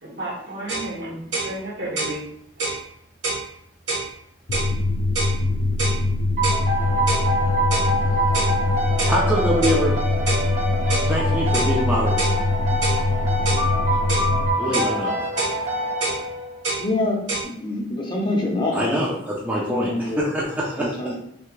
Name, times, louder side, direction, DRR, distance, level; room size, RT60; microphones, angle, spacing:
voice 1, 0.0-2.2, right 1 dB, 65° right, -4 dB, 1.4 m, -32 dB
sound 1, 0.7-0.9 1.3-1.5 2.0-2.2 2.6-2.8 3.2-3.4 3.9-4.1 4.5-4.7 5.1-5.4 5.8-6.0 6.4-6.6 7.1-7.3 7.7-7.9 8.3-8.6 9.0-9.2 9.6-9.8 10.3-10.5 10.9-11.1 11.5-11.7 12.2-12.4 12.8-13.0 13.5-13.7 14.1-14.3 14.7-14.9 15.4-15.6 16.0-16.2 16.6-16.9 17.3-17.4, right 3 dB, 90° right, 1.3 m, -26 dB
sound 2, 4.5-14.5, left 2 dB, 90° left, 0.6 m, -23 dB
sound 3, 6.4-16.7, equal, 45° right, 0.8 m, -26 dB
voice 2, 9.1-10.0 11.1-12.2 14.6-15.2 18.7-20.9, equal, 10° right, -4 dB, 0.5 m, -24 dB
voice 3, 16.8-19.2 19.7-20.2 20.8-21.1, left 2 dB, 25° left, 0 dB, 0.7 m, -26 dB
3.4 x 2.7 x 3.1 m, 0.74 s
head